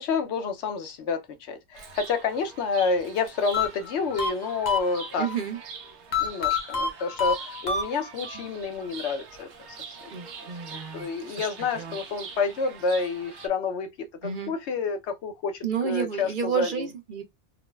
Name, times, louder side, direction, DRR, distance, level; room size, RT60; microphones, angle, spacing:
voice 1, 0.0-5.3 6.2-9.5 9.9-10.1 10.7-16.7, left 4 dB, 80° left, 0.9 m, -29 dB
Chirp tweet, 1.7-13.5, right 5 dB, 80° right, 1.0 m, -43 dB
sound 1, 3.5-5.4 6.1-8.4, left 5 dB, 45° left, 0.8 m, -28 dB
voice 2, 5.2-5.6 8.3-8.5 10.1-11.5 11.7-12.0 14.2-14.5 15.6-17.2, right 7 dB, 55° right, 0.7 m, -31 dB
3.7 x 2.1 x 2.2 m
omnidirectional pair, 1.1 m